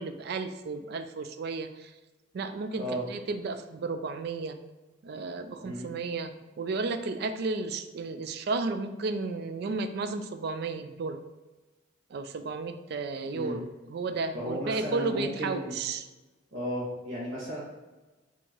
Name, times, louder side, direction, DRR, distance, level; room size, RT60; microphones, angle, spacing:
voice 1, 0.0-1.9 2.3-4.6 5.0-11.3 12.1-16.1, right 3 dB, 55° right, 9 dB, 0.3 m, -33 dB
voice 2, 2.7-3.0 5.6-6.0 13.3-13.6 14.3-15.7 16.5-17.6, equal, 90° right, -10 dB, 1.2 m, -34 dB
4.4 x 2.8 x 2.9 m, 1.2 s
head